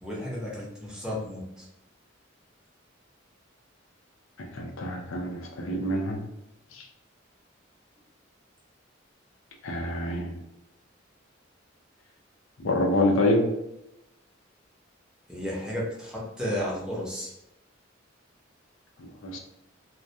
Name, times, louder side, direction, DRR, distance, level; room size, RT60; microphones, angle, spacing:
voice 1, 0.0-1.7 15.3-17.4, left 1 dB, 5° right, -6 dB, 0.7 m, -33 dB
voice 2, 4.4-6.2 6.7-6.8 9.6-10.4 12.6-13.5 19.0-19.4, left 1 dB, 85° left, 2 dB, 0.5 m, -27 dB
2.2 x 2.2 x 2.7 m, 0.88 s
head